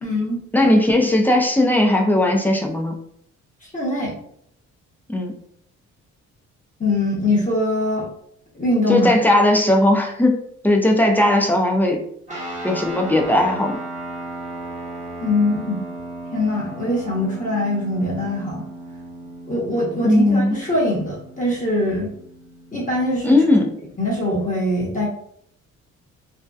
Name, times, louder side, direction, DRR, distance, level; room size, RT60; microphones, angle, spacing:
voice 1, 0.0-0.4 3.6-4.1 6.8-8.1 8.5-9.1 15.2-15.9 16.3-18.6 19.5-22.1 22.7-23.4 24.0-25.1, left 1 dB, 25° left, -5 dB, 0.9 m, -22 dB
voice 2, 0.5-3.0 5.1-5.3 8.9-12.0 12.6-13.8 20.0-20.6 23.2-23.7, left 1 dB, 5° left, 2 dB, 0.4 m, -17 dB
sound 1, 12.3-24.1, right 1 dB, 25° right, 0.9 m, -36 dB
2.6 x 2.2 x 2.2 m, 0.68 s
cardioid pair, 90°, 30 cm